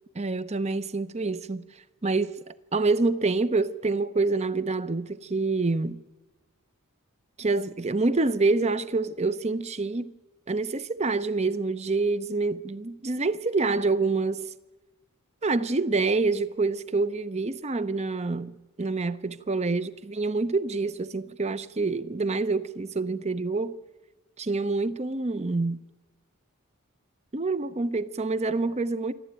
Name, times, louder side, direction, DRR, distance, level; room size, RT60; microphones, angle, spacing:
voice 1, 0.1-1.7 2.0-6.0 7.4-10.1 10.5-14.5 15.4-23.8 24.4-25.8 27.3-29.1, right 3 dB, 30° right, 0.7 m, -27 dB
27.0 x 12.5 x 9.0 m
head